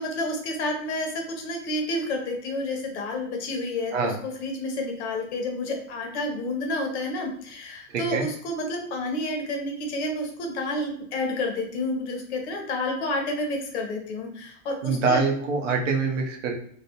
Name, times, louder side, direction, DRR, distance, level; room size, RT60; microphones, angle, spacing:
voice 1, 0.0-15.3, left 1 dB, 55° left, 2 dB, 0.7 m, -30 dB
voice 2, 7.9-8.2 14.8-16.6, right 4 dB, 65° right, 2 dB, 0.7 m, -25 dB
2.3 x 2.1 x 2.8 m, 0.62 s
supercardioid pair, 180°, 40 cm